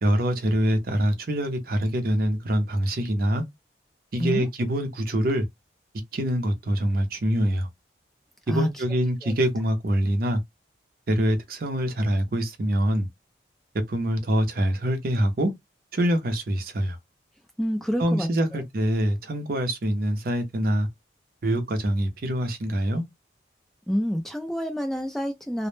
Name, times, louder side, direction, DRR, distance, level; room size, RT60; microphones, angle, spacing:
voice 1, 0.0-3.4 4.1-5.4 6.1-7.7 8.5-10.4 11.1-13.1 13.9-15.5 15.9-17.0 18.0-20.9 21.4-23.0, equal, 50° right, 0.5 m, -25 dB
voice 2, 8.5-8.8 9.2-9.3 17.6-18.6 23.9-25.7, equal, ahead, 0.4 m, -28 dB
2.0 x 2.0 x 3.1 m
head